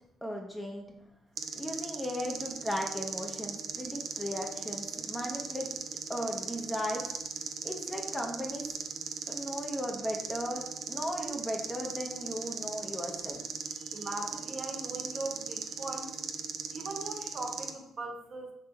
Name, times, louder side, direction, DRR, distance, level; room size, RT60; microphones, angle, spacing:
voice 1, 0.2-0.8 1.5-5.7 6.1-7.0 7.6-8.6 9.3-13.4, equal, 10° left, 1 dB, 0.8 m, -36 dB
sound 1, 1.4-17.7, right 6 dB, 70° right, 0.5 m, -38 dB
voice 2, 13.9-16.1 16.7-18.5, right 2 dB, 40° right, 2 dB, 1.0 m, -39 dB
3.6 x 3.3 x 4.4 m, 0.79 s
cardioid pair, 90°, 0 cm